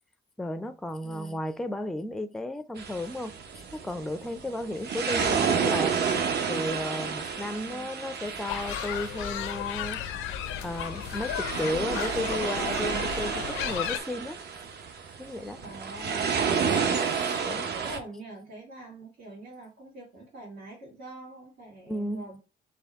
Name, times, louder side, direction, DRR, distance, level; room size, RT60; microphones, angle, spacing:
voice 1, 0.4-3.3 3.7-6.0 6.5-10.0 10.6-14.4 15.2-15.6 16.4-17.2 17.5-17.7 21.9-22.3, left 1 dB, ahead, 0.4 m, -34 dB
voice 2, 1.0-1.4 7.4-7.9 15.6-16.3 17.2-22.4, right 2 dB, 90° right, 2.4 m, -44 dB
sound 1, 2.8-18.0, right 6 dB, 55° right, 0.8 m, -31 dB
sound 2, 8.5-14.0, left 11 dB, 90° left, 0.5 m, -34 dB
4.3 x 3.1 x 3.5 m
cardioid pair, 90°, 20 cm